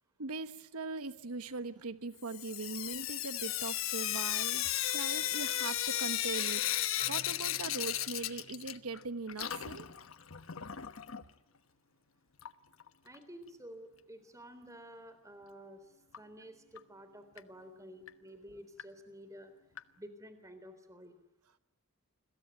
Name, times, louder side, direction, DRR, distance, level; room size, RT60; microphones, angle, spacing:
voice 1, 0.2-6.7 7.1-9.9, right 3 dB, 90° right, 11 dB, 1.2 m, -41 dB
Sink (filling or washing) / Drip, 2.3-9.0 9.3-11.2 12.4-12.5 12.8-12.9 13.1-13.2 16.1-16.2 16.8-16.9 17.4-17.5 18.1-18.2 18.8-18.9 19.8-19.9, left 12 dB, 65° left, 1.1 m, -35 dB
Marimba xylophone, 7.0-10.9, left 2 dB, 35° left, 1.5 m, -56 dB
voice 2, 13.0-15.8 16.2-19.5 20.0-21.2, equal, 15° right, 10 dB, 3.5 m, -51 dB
29.5 x 22.5 x 9.2 m, 0.83 s
head